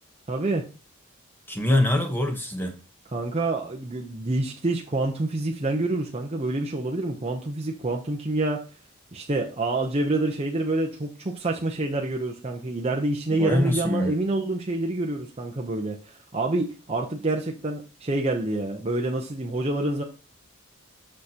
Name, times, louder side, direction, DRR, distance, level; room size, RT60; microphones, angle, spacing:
voice 1, 0.3-0.7 3.1-8.6 9.1-20.0, right 2 dB, 30° right, 0.7 m, -27 dB
voice 2, 1.5-2.7 13.4-14.1, left 1 dB, 10° left, 0.9 m, -24 dB
6.5 x 6.4 x 2.8 m
head